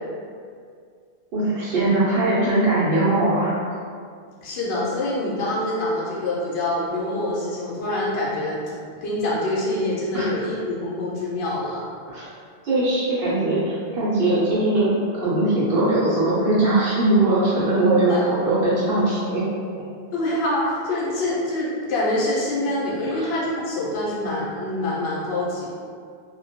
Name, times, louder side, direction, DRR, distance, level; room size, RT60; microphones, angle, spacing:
voice 1, 1.3-3.6 10.1-10.4 12.1-12.3 12.6-14.9 15.2-19.4 23.1-23.3, right 2 dB, 70° right, -10 dB, 0.8 m, -20 dB
voice 2, 4.4-8.6 8.9-11.8 17.9-18.2 20.1-25.7, left 1 dB, 75° left, -6 dB, 0.8 m, -25 dB
2.2 x 2.1 x 2.7 m, 2.1 s
omnidirectional pair, 1.1 m